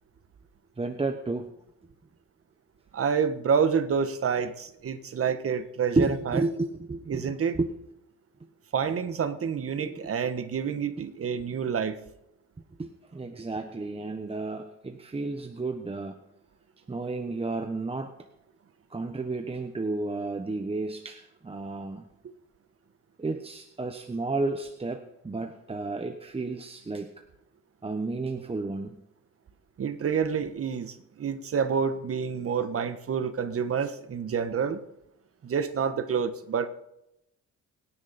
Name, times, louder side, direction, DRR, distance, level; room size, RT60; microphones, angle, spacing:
voice 1, 0.8-1.5 6.0-7.7 9.7-10.0 12.8-16.2 16.9-18.1 18.9-22.1 23.2-27.1 27.8-29.0, right 3 dB, 20° right, 6 dB, 1.1 m, -32 dB
voice 2, 2.9-6.4 7.1-7.6 8.7-12.0 29.8-34.8 35.4-36.7, right 6 dB, 50° right, 10 dB, 1.4 m, -28 dB
24.5 x 10.5 x 4.3 m, 0.85 s
cardioid pair, 90°, 30 cm